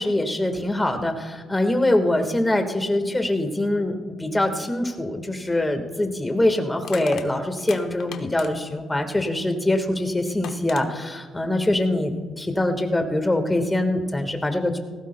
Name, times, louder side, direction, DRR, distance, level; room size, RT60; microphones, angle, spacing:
voice 1, 0.0-14.8, left 1 dB, 15° left, 5 dB, 1.6 m, -23 dB
Crushing, 5.4-5.6 6.8-8.8 10.0-10.1 10.4-10.9, left 8 dB, 75° left, 0.9 m, -39 dB
18.5 x 16.0 x 2.2 m, 1.4 s
cardioid pair, 90°, 0 cm